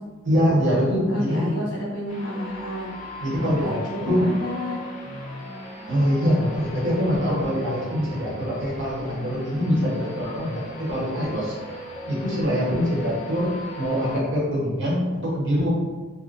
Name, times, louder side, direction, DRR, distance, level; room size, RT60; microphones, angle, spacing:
voice 1, 0.2-1.6 3.2-4.3 5.9-11.5 12.1-15.7, equal, 60° right, -6 dB, 1.0 m, -24 dB
voice 2, 1.1-2.9 3.3-4.8, equal, 60° left, -6 dB, 1.1 m, -31 dB
sound 1, 2.1-14.2, left 1 dB, 35° left, 0.6 m, -39 dB
3.6 x 2.1 x 2.5 m, 1.2 s
head